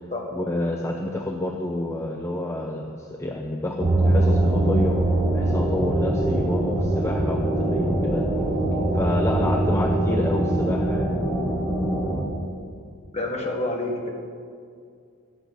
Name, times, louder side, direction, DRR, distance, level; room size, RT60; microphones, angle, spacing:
voice 1, 0.3-5.0 5.3-8.3 8.9-11.1, left 1 dB, 15° left, 2 dB, 0.6 m, -28 dB
sound 1, 3.8-12.2, right 1 dB, 5° right, 1.6 m, -22 dB
voice 2, 13.1-14.1, left 2 dB, 30° left, 0 dB, 1.5 m, -28 dB
12.0 x 8.1 x 6.2 m, 2.3 s
head